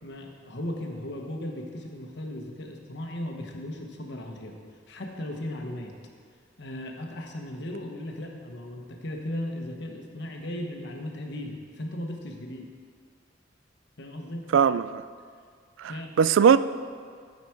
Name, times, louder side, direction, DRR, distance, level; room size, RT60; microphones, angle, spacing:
voice 1, 0.0-4.6 4.9-5.9 6.6-12.7 14.0-14.5 15.9-16.1, left 1 dB, 60° left, 1.1 m, -36 dB
voice 2, 14.5-15.0 15.8-16.6, right 7 dB, 75° right, 0.3 m, -19 dB
14.0 x 5.1 x 4.7 m
head